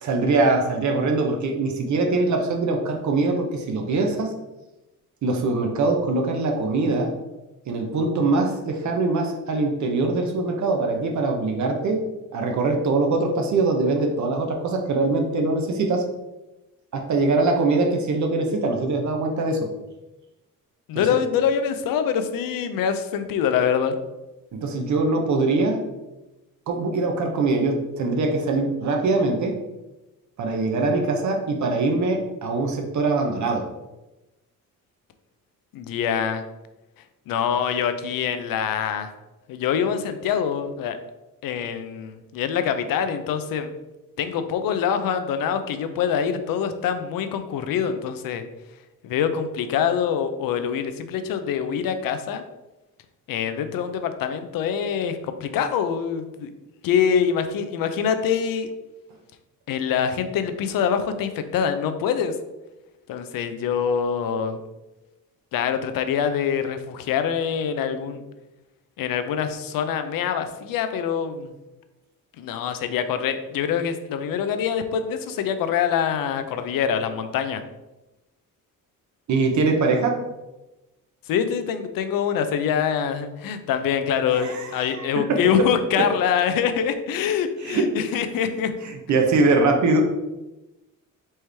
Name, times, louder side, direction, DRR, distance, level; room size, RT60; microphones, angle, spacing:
voice 1, 0.0-4.3 5.2-7.1 7.7-12.0 12.3-16.0 16.9-19.7 20.9-21.0 24.5-25.8 26.7-29.5 30.4-33.7 79.3-80.2 84.3-85.7 86.0-86.1 87.6-87.9 88.8-90.0, right 3 dB, 60° right, 2 dB, 0.7 m, -22 dB
voice 2, 20.9-24.0 35.7-36.4 37.3-39.1 39.5-41.0 41.4-43.7 44.2-48.4 49.0-52.4 53.3-56.5 56.8-58.7 59.7-62.3 63.1-64.6 65.5-68.2 69.0-71.5 72.4-77.6 81.3-88.7, left 7 dB, 85° left, 9 dB, 0.5 m, -25 dB
4.4 x 3.1 x 3.3 m, 1.0 s
cardioid pair, 115°, 33 cm